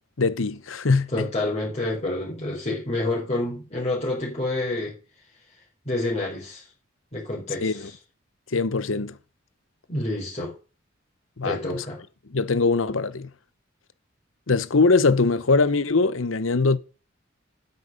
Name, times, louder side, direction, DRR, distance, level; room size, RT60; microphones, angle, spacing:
voice 1, 0.2-1.3 7.6-7.9 8.5-9.1 11.4-11.8 12.3-13.3 14.5-16.8, left 3 dB, 85° left, 0.9 m, -22 dB
voice 2, 1.1-4.9 5.9-6.6 7.1-7.9 9.9-10.5 11.4-12.0, left 2 dB, 35° left, 4.0 m, -28 dB
9.5 x 8.3 x 5.3 m
head